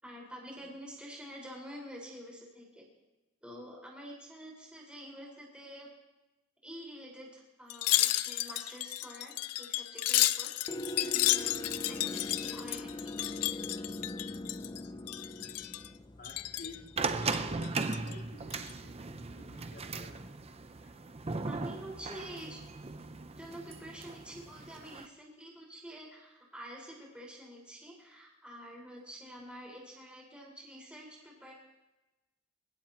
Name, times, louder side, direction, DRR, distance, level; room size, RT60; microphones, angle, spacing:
voice 1, 0.0-2.9 3.4-5.9 6.6-10.5 11.3-13.2 21.5-22.6 23.4-31.5, equal, 5° right, -3 dB, 5.1 m, -48 dB
Wind chime, 7.7-14.8 15.1-15.9 16.2-16.8 17.2-18.1 18.5-18.7, left 15 dB, 85° left, 0.5 m, -32 dB
sound 1, 10.7-17.3, left 1 dB, 20° left, 0.6 m, -42 dB
voice 2, 16.1-20.3 20.8-20.9, left 1 dB, 50° left, -4 dB, 3.9 m, -50 dB
sound 2, 17.0-25.1, right 3 dB, 25° right, 0.7 m, -38 dB
27.5 x 16.0 x 3.1 m, 1.0 s
head